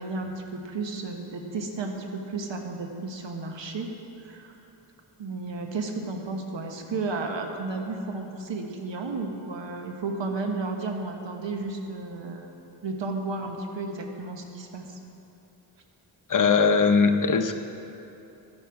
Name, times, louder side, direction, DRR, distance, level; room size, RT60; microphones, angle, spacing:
voice 1, 0.0-3.9 4.2-4.5 5.2-12.6 12.8-15.0, right 3 dB, 85° right, 3 dB, 1.3 m, -33 dB
voice 2, 16.3-17.6, left 5 dB, 45° left, 7 dB, 0.8 m, -20 dB
12.0 x 11.0 x 4.8 m, 2.9 s
cardioid pair, 75°, 43 cm